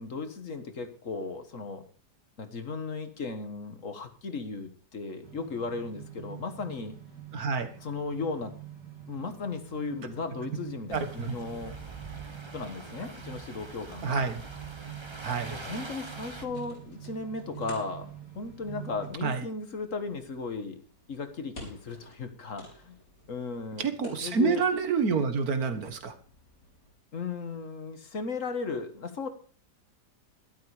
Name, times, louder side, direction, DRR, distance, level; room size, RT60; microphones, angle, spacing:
voice 1, 0.0-1.8 2.4-7.0 7.8-8.6 9.1-11.8 12.5-14.2 15.5-20.8 21.1-23.0 23.3-23.9 24.2-24.6 27.1-29.3, left 4 dB, 50° left, 9 dB, 1.8 m, -36 dB
sound 1, 5.2-19.1, right 11 dB, 85° right, 3.8 m, -46 dB
voice 2, 7.3-7.7 10.9-11.4 14.0-14.4 15.2-15.6 19.2-19.4 23.8-26.1, right 5 dB, 60° right, 9 dB, 1.9 m, -28 dB
sound 2, 10.9-16.5, right 2 dB, 20° right, 1.2 m, -44 dB
sound 3, 16.0-26.9, left 1 dB, 85° left, 5.8 m, -53 dB
12.5 x 12.0 x 4.9 m, 0.41 s
omnidirectional pair, 1.8 m